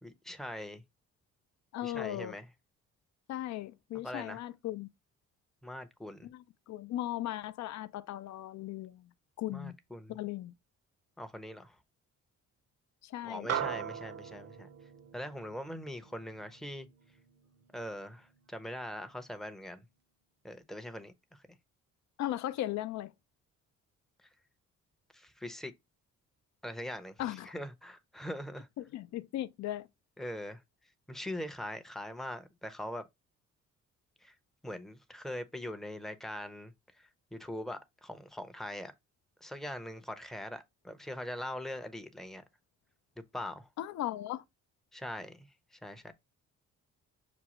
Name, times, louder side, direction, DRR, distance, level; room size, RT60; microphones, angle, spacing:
voice 1, 0.0-0.8 1.8-2.5 4.0-4.4 5.6-6.3 9.5-10.2 11.2-11.8 13.2-14.7 15.1-16.9 17.7-19.9 20.4-21.4 24.2-24.3 25.1-25.7 26.6-28.7 30.2-30.6 31.1-33.0 34.2-34.4 34.6-38.9 39.4-42.4 43.3-43.7 44.9-46.1, left 1 dB, ahead, 0.6 m, -42 dB
voice 2, 1.7-2.3 3.3-4.9 6.2-9.1 9.4-9.8 10.1-10.5 13.0-13.5 22.2-23.1 27.2-27.5 28.8-29.9 43.8-44.4, left 14 dB, 65° left, 0.5 m, -37 dB
sound 1, 13.5-18.1, right 8 dB, 55° right, 0.7 m, -40 dB
6.0 x 2.3 x 2.9 m
cardioid pair, 90°, 30 cm